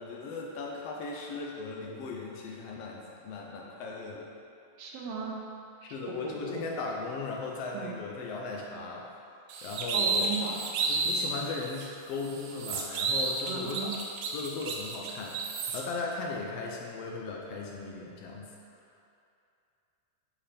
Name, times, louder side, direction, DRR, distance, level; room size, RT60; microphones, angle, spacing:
voice 1, 0.0-4.3 5.8-9.1 9.6-10.3 10.9-18.5, left 4 dB, 85° left, 0 dB, 1.4 m, -37 dB
voice 2, 4.8-5.4 6.1-6.6 7.7-7.9 9.9-10.6 13.5-13.9, right 6 dB, 65° right, -2 dB, 1.8 m, -36 dB
sound 1, 9.5-11.3 11.8-11.9 12.2-15.8, right 3 dB, 80° right, 2.1 m, -31 dB
9.9 x 5.7 x 3.4 m, 2.6 s
omnidirectional pair, 3.5 m